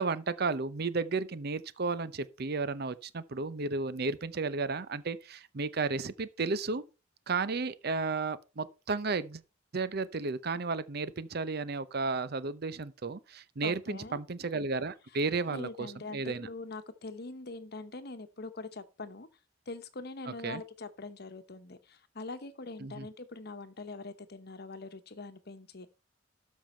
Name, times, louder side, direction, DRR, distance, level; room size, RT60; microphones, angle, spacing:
voice 1, 0.0-6.8 7.3-9.4 9.7-16.5 20.4-20.6 22.8-23.1, right 4 dB, 55° right, 0.7 m, -33 dB
voice 2, 13.6-14.2 15.4-19.3 19.7-25.9, left 3 dB, 55° left, 1.0 m, -43 dB
12.5 x 5.5 x 4.4 m
head